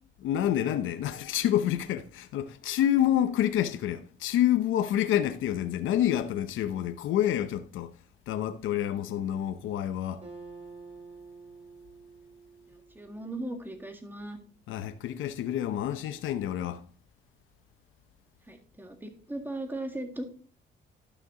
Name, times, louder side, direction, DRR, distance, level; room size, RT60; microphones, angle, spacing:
voice 1, 0.2-7.9 8.3-10.2 14.7-16.8, left 11 dB, 80° left, 0.8 m, -28 dB
Acoustic guitar, 10.2-13.8, right 4 dB, 35° right, 5.3 m, -49 dB
voice 2, 12.7-14.4 18.5-20.3, right 1 dB, 10° right, 2.0 m, -38 dB
11.5 x 6.0 x 3.8 m
cardioid pair, 90°, 20 cm